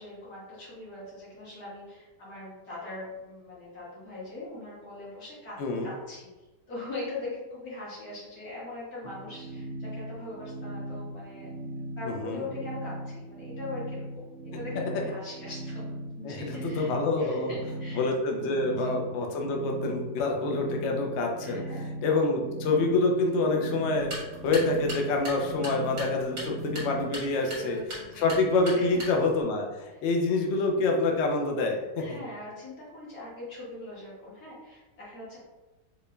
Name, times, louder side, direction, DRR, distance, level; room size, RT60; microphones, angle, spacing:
voice 1, 0.0-6.3 6.7-11.5 12.0-18.1 18.6-19.0 21.4-22.0 27.3-28.4 28.7-29.0 29.9-30.0 32.0-35.4, left 2 dB, 60° left, -9 dB, 2.1 m, -41 dB
voice 2, 5.6-5.9 12.0-12.5 16.2-17.5 17.9-24.1 24.4-27.8 28.2-32.2, left 3 dB, 85° left, 1 dB, 0.6 m, -27 dB
sound 1, 9.0-27.2, right 1 dB, 70° right, 0.7 m, -39 dB
sound 2, 23.9-29.4, equal, 35° right, 1.5 m, -40 dB
4.3 x 3.2 x 2.2 m, 1.1 s
omnidirectional pair, 1.9 m